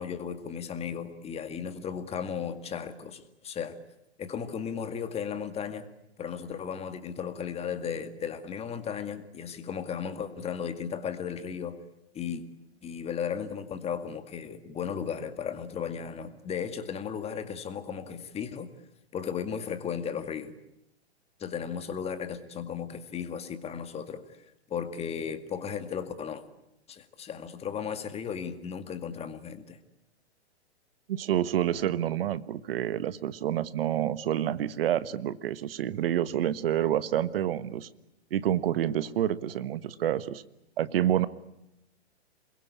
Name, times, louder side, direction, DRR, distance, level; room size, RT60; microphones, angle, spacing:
voice 1, 0.0-3.8 4.2-5.9 6.2-11.8 12.1-12.4 12.8-18.7 19.1-20.5 21.4-24.2 24.7-26.4 26.9-29.8, left 7 dB, 20° left, 10 dB, 2.1 m, -35 dB
voice 2, 31.1-37.9 38.3-40.4 40.8-41.3, right 11 dB, 55° right, 15 dB, 1.4 m, -28 dB
27.5 x 22.0 x 8.5 m, 0.85 s
hypercardioid pair, 120°, 34 cm